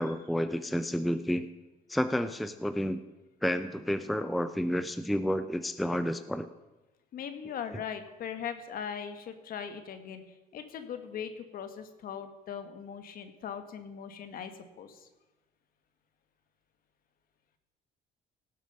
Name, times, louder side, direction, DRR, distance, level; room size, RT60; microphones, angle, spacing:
voice 1, 0.0-1.5 1.9-3.0 3.4-6.5 7.7-7.8, equal, ahead, 11 dB, 0.5 m, -30 dB
voice 2, 7.1-10.2 10.5-14.5 14.8-15.1, left 7 dB, 60° left, 8 dB, 1.5 m, -40 dB
17.5 x 7.5 x 5.4 m, 1.1 s
cardioid pair, 110°, 17 cm